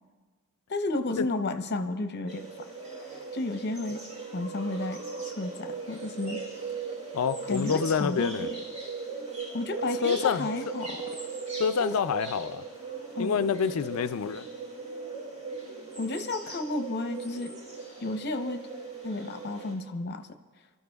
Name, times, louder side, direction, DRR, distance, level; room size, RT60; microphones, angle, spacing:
voice 1, 0.7-2.7 3.3-4.0 4.3-6.4 7.5-8.6 9.5-11.0 11.8-12.0 13.1-13.4 16.0-17.5 18.0-18.7 19.0-20.4, left 2 dB, 50° left, 8 dB, 0.8 m, -32 dB
sound 1, 2.3-19.7, right 4 dB, 35° right, 3.6 m, -38 dB
voice 2, 7.1-8.5 10.0-10.5 11.6-12.6 13.2-14.5, left 7 dB, 70° left, 12 dB, 0.4 m, -27 dB
28.5 x 13.0 x 2.3 m, 1.5 s
head